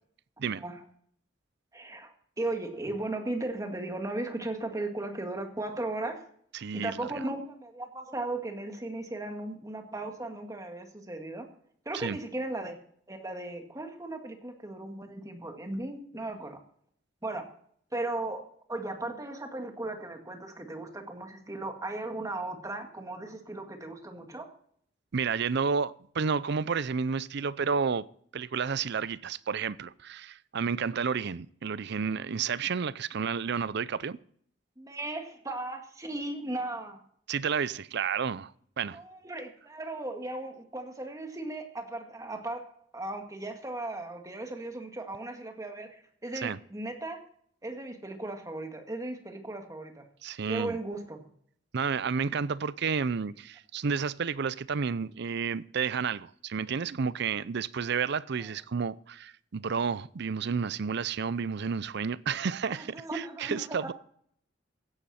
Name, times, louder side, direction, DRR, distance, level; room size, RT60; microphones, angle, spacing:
voice 1, 1.7-6.2 6.7-11.5 11.9-12.8 13.1-16.6 17.2-17.5 17.9-24.5 34.8-37.0 38.9-42.6 42.9-47.2 47.6-50.1 50.5-51.3 62.7-63.9, right 2 dB, 20° right, 1.9 m, -36 dB
voice 2, 6.5-7.1 11.9-12.2 25.1-28.1 28.3-34.2 37.3-38.5 38.8-39.0 46.4-46.6 50.2-50.8 51.7-63.9, right 6 dB, 60° right, 0.5 m, -31 dB
16.0 x 11.5 x 4.3 m
head